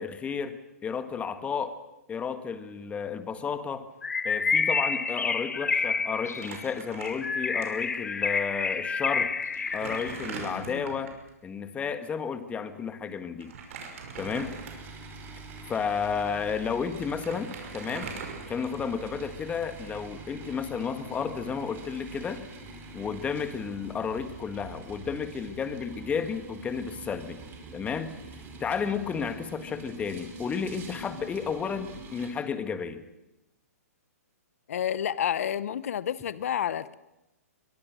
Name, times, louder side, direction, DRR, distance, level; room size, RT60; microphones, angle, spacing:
voice 1, 0.0-1.8 2.1-3.9 4.2-9.4 9.7-11.1 11.4-13.5 14.2-14.6 15.7-18.1 18.5-22.4 22.9-27.4 27.7-28.1 28.6-33.0, left 6 dB, 15° left, 11 dB, 1.6 m, -32 dB
Bird, 4.0-10.3, left 5 dB, 85° left, 1.3 m, -29 dB
Crumpling crinkling, 6.3-7.6 7.9-8.0 8.9-9.0 9.4-11.2 13.4-15.0 15.6-15.7 16.6-16.7 17.0-19.0, right 5 dB, 55° right, 5.6 m, -41 dB
voice 2, 10.5-10.8 34.7-37.0, left 9 dB, 65° left, 18 dB, 0.9 m, -30 dB
sound 1, 14.1-32.3, right 3 dB, 25° right, 4.7 m, -45 dB
22.5 x 22.0 x 6.4 m, 0.94 s
hypercardioid pair, 130°, 8 cm